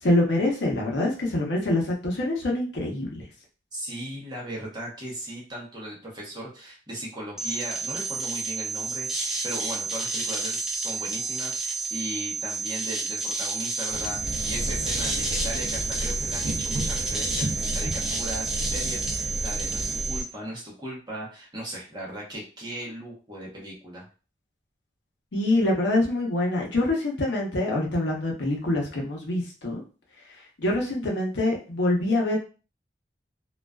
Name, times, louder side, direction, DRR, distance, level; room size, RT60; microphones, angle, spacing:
voice 1, 0.0-3.2 25.3-29.8 30.6-32.4, left 1 dB, 80° left, -1 dB, 0.7 m, -25 dB
voice 2, 3.7-24.1, right 1 dB, 25° right, -4 dB, 0.8 m, -37 dB
sound 1, 7.4-20.2, right 3 dB, 5° right, 0.3 m, -30 dB
sound 2, 13.9-20.0, right 1 dB, 70° right, 0.5 m, -36 dB
sound 3, 14.2-20.2, equal, 40° left, 1.1 m, -34 dB
2.4 x 2.3 x 2.2 m, 0.35 s
head